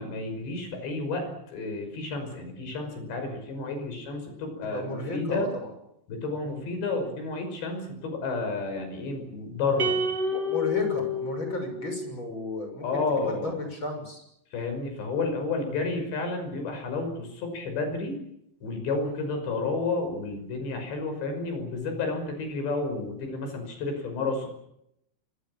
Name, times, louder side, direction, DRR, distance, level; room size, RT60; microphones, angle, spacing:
voice 1, 0.0-5.5 6.1-10.0 12.8-13.5 14.5-18.2 18.6-24.5, left 3 dB, 65° left, 6 dB, 7.9 m, -31 dB
voice 2, 4.7-5.7 6.4-6.6 10.3-12.8 13.2-14.2 19.0-19.3, left 2 dB, 25° left, 5 dB, 6.8 m, -34 dB
sound 1, 9.8-12.3, left 2 dB, 50° right, 1.2 m, -29 dB
25.5 x 23.5 x 7.3 m, 0.78 s
omnidirectional pair, 5.4 m